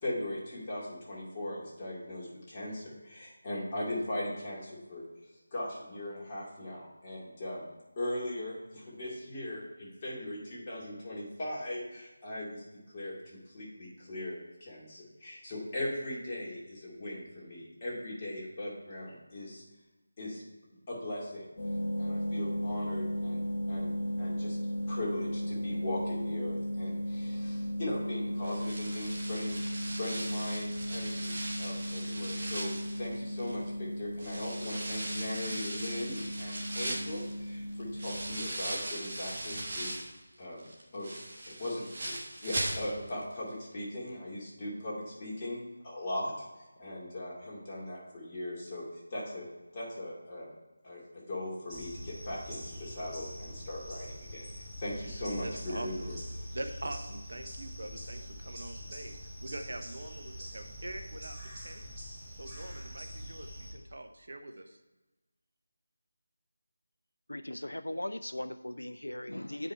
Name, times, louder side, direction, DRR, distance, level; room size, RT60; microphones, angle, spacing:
voice 1, 0.0-5.0 5.5-7.7 8.0-12.6 12.9-19.6 20.2-20.4 20.9-21.5 22.0-24.6 24.9-32.7 33.0-39.9 40.4-40.7 40.9-41.1 41.5-42.2 42.4-46.5 46.8-48.8 49.1-49.4 49.7-50.5 50.8-54.4 54.8-56.2, left 1 dB, 25° left, -5 dB, 2.3 m, -39 dB
sound 1, 21.6-38.5, equal, 45° left, 1.3 m, -36 dB
sound 2, 28.4-33.7 34.2-40.2 40.6-43.2 43.5-43.6 44.1-44.2, right 1 dB, 40° right, 1.4 m, -39 dB
sound 3, 51.7-63.7, equal, 15° right, 2.8 m, -44 dB
voice 2, 55.4-56.1 56.5-61.4 61.6-61.9 62.4-64.8, right 1 dB, 60° right, 6 dB, 0.8 m, -43 dB
voice 3, 67.3-69.7, left 1 dB, 75° left, 11 dB, 0.3 m, -38 dB
8.7 x 5.2 x 4.5 m, 1.1 s
figure-of-eight pair, 160°, 0 cm